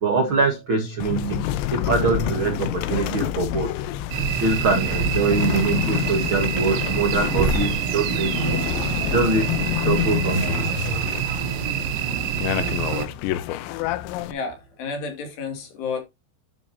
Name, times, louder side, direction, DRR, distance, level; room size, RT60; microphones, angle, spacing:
voice 1, 0.0-3.7 4.4-8.4 9.1-10.7 12.1-12.2, right 4 dB, 55° right, 1.4 m, -24 dB
sound 1, 1.0-14.3, left 13 dB, 85° left, 3.0 m, -28 dB
sound 2, 4.1-13.1, right 8 dB, 85° right, 3.5 m, -26 dB
voice 2, 14.3-16.0, left 4 dB, 70° left, 4.7 m, -31 dB
11.5 x 6.3 x 2.8 m
omnidirectional pair, 5.2 m